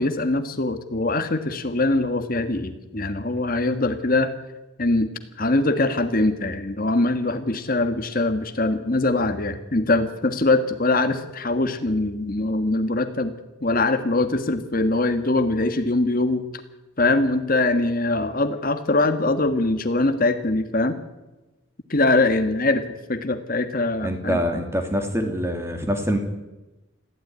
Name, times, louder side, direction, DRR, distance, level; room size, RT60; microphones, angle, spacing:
voice 1, 0.0-4.3 4.8-5.1 5.4-13.3 13.6-16.4 17.0-21.0 21.9-22.8 23.1-24.4, left 2 dB, 40° left, 8 dB, 1.5 m, -22 dB
voice 2, 24.0-26.2, equal, 10° right, 5 dB, 2.6 m, -25 dB
21.5 x 15.5 x 9.6 m, 1.1 s
head